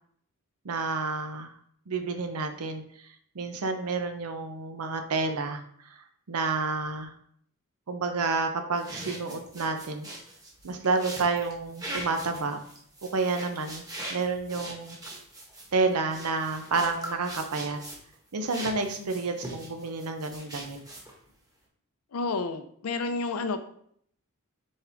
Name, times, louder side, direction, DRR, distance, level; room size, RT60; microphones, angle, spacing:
voice 1, 0.6-1.5 1.9-3.1 3.3-5.6 5.9-6.0 6.3-7.1 7.9-10.1 10.6-12.6 13.1-15.0 15.7-17.8 18.3-20.8, right 4 dB, 85° right, 6 dB, 0.7 m, -30 dB
sound 1, 8.8-18.1 18.5-21.3, right 1 dB, 15° right, 1.0 m, -41 dB
voice 2, 22.1-23.6, left 3 dB, 75° left, 9 dB, 0.5 m, -30 dB
4.3 x 3.6 x 3.4 m, 0.65 s
head